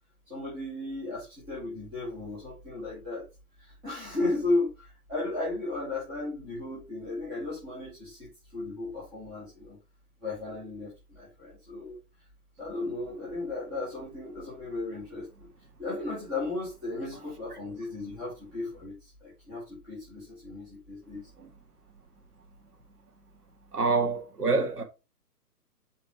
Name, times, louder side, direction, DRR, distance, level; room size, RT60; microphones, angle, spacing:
voice 1, 0.3-3.3 3.6-9.8 10.2-12.0 12.6-15.5 15.8-21.3, left 2 dB, ahead, 0.5 m, -35 dB
voice 2, 23.7-24.8, right 4 dB, 75° right, 2.0 m, -26 dB
7.9 x 3.0 x 4.8 m
figure-of-eight pair, 135°, 47 cm